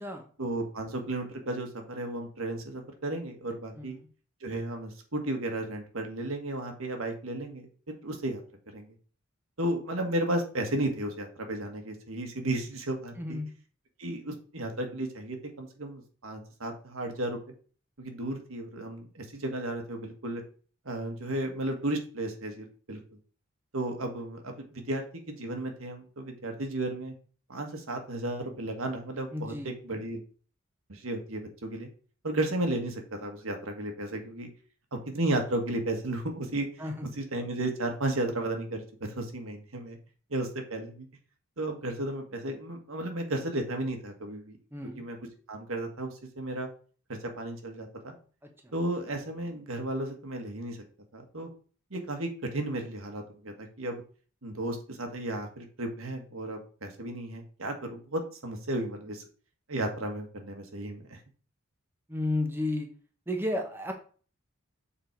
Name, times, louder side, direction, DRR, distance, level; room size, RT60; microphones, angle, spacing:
voice 1, 0.4-4.0 4.4-8.4 8.7-8.9 9.6-13.4 14.0-17.4 18.0-20.4 20.8-23.0 23.7-27.1 27.5-30.2 30.9-31.9 32.2-34.5 34.9-38.8 39.2-40.0 40.3-41.1 41.6-44.6 44.9-45.2 45.5-46.7 47.4-48.2 48.7-50.8 51.1-51.5 51.9-54.0 54.4-59.2 59.7-61.2, right 1 dB, 80° right, 4 dB, 1.6 m, -34 dB
voice 2, 13.2-13.5 29.3-29.7 36.8-37.1 44.7-45.0 62.1-62.9 63.3-63.9, left 1 dB, 10° right, 3 dB, 1.1 m, -32 dB
7.0 x 4.4 x 4.6 m, 0.40 s
head